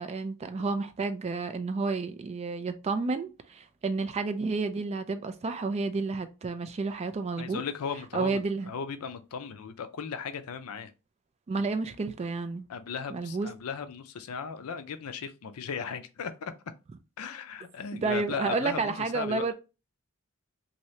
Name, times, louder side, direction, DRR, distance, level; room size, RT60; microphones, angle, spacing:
voice 1, 0.0-7.6 8.1-8.7 11.5-12.7 13.1-13.5 18.0-19.5, right 4 dB, 30° right, 0.3 m, -31 dB
voice 2, 7.4-10.9 12.7-16.5 17.2-19.4, left 6 dB, 75° left, 0.4 m, -37 dB
2.8 x 2.7 x 3.1 m
head